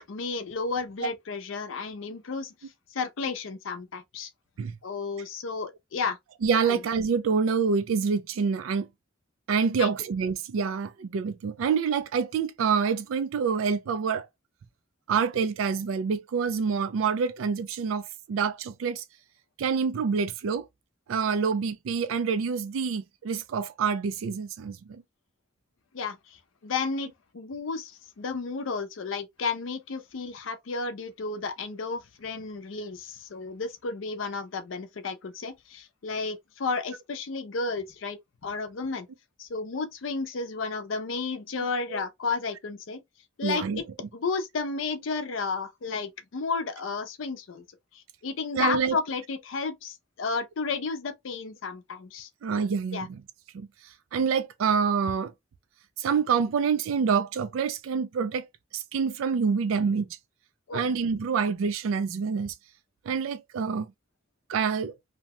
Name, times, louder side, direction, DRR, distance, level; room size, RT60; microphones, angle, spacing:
voice 1, 0.0-2.5 2.9-4.3 4.8-6.2 6.7-6.8 9.8-9.9 25.9-26.4 26.6-38.2 38.4-39.1 39.4-43.0 43.4-43.8 44.1-47.6 47.9-52.3 52.9-53.1 60.7-60.9, left 4 dB, 75° left, 0.5 m, -32 dB
voice 2, 6.4-8.9 9.5-14.3 15.1-19.0 19.6-20.7 21.1-25.0 41.9-42.0 43.4-43.8 48.5-49.0 52.4-53.2 53.5-53.7 54.1-55.3 56.0-58.5 58.7-60.1 60.7-62.5 63.1-63.9 64.5-64.9, right 6 dB, 90° right, 0.4 m, -27 dB
2.8 x 2.1 x 2.8 m
head